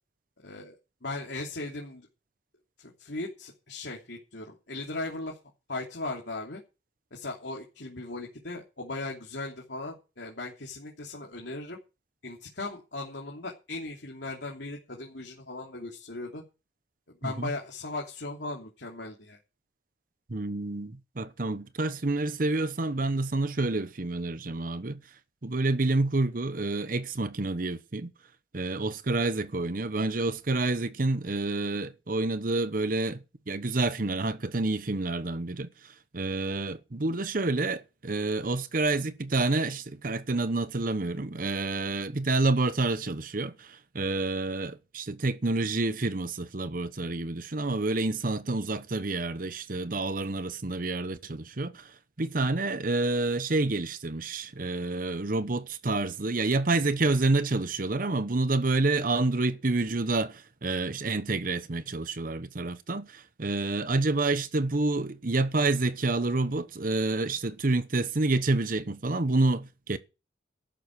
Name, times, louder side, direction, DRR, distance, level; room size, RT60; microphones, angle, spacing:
voice 1, 0.4-0.7 1.0-2.1 2.8-5.4 5.7-6.6 7.1-11.8 12.2-16.4 17.1-19.4, left 2 dB, 75° left, 3.1 m, -38 dB
voice 2, 17.2-17.5 20.3-25.0 25.4-28.1 28.5-33.2 33.5-35.7 36.1-51.9 52.2-70.0, right 2 dB, 50° right, 0.9 m, -28 dB
13.5 x 12.0 x 4.8 m
head